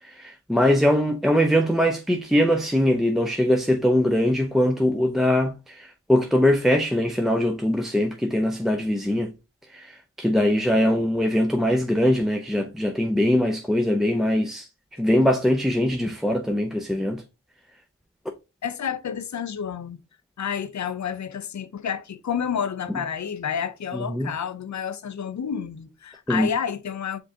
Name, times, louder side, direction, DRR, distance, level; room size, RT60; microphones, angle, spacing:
voice 1, 0.0-9.3 9.7-14.7 15.0-17.2 23.9-24.3 26.3-26.5, left 1 dB, ahead, 0.6 m, -22 dB
voice 2, 18.6-20.0 20.4-27.2, left 7 dB, 60° left, 0.6 m, -30 dB
5.2 x 3.7 x 2.7 m
wide cardioid pair, 50°, 32 cm